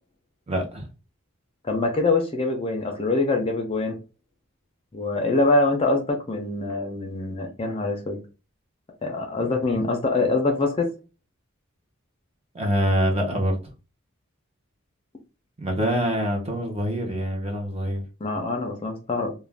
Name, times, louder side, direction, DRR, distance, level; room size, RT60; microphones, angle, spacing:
voice 1, 0.5-0.9 12.5-13.6 15.6-18.0, equal, 30° right, 0.7 m, -25 dB
voice 2, 1.6-4.0 4.9-8.2 9.0-10.9 18.2-19.3, left 2 dB, 25° left, 0.5 m, -24 dB
2.4 x 2.1 x 3.2 m
head